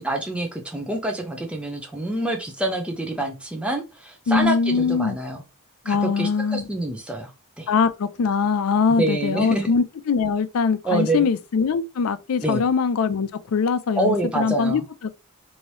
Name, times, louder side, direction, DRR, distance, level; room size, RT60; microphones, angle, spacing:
voice 1, 0.0-5.4 5.9-7.3 7.6-7.7 8.9-9.7 10.8-11.2 12.4-12.7 14.0-14.8, right 2 dB, 5° right, 0.5 m, -26 dB
voice 2, 4.3-5.2 5.9-6.7 7.7-14.8, left 5 dB, 75° left, 0.4 m, -22 dB
2.9 x 2.7 x 3.1 m
head